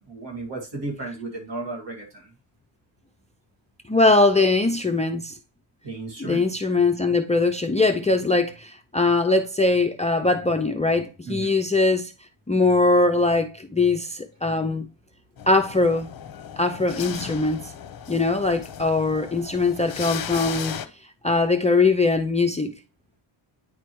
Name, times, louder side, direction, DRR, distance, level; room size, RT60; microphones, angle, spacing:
voice 1, 0.0-2.3 5.8-6.4 11.3-11.5, right 2 dB, 60° right, 2.2 m, -34 dB
voice 2, 3.9-5.3 6.2-12.1 12.5-14.9 15.5-16.1 16.6-17.6 18.1-20.8 21.2-22.7, left 3 dB, 15° left, 0.4 m, -21 dB
sound 1, 15.4-20.9, left 8 dB, 45° left, 0.7 m, -36 dB
9.4 x 4.6 x 3.0 m
cardioid pair, 95°, 49 cm